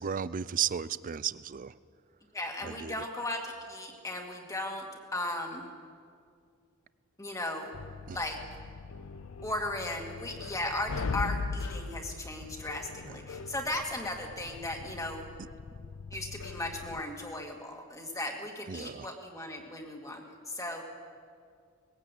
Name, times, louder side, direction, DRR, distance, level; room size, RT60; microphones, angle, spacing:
voice 1, 0.0-1.7 2.6-3.0 8.1-8.2 13.0-13.2 18.7-19.1, right 8 dB, 40° right, 17 dB, 0.4 m, -34 dB
voice 2, 2.3-4.9 5.1-5.7 7.2-7.7 8.1-8.4 9.4-15.2 15.7-15.9 16.1-20.8, left 1 dB, 15° left, 1 dB, 2.0 m, -36 dB
sound 1, 7.7-17.0, left 4 dB, 70° left, 0.6 m, -40 dB
20.5 x 15.5 x 8.3 m, 2.2 s
head